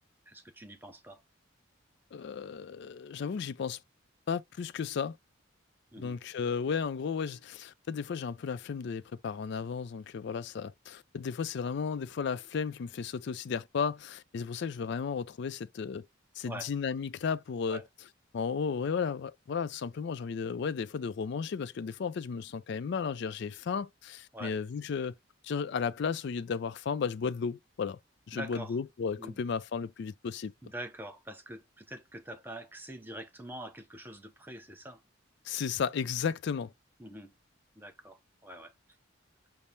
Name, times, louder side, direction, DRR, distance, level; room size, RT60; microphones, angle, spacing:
voice 1, 0.3-1.2 5.9-6.2 16.5-16.7 17.7-17.8 24.3-24.6 28.3-28.8 29.2-29.4 30.6-35.0 37.0-37.3 37.8-38.7, right 1 dB, 10° right, 0.6 m, -44 dB
voice 2, 2.1-3.8 4.3-5.2 6.0-16.1 16.4-17.8 18.3-25.1 25.4-28.0 28.3-30.5 35.4-36.7, left 6 dB, 55° left, 0.3 m, -34 dB
5.4 x 2.0 x 3.1 m
head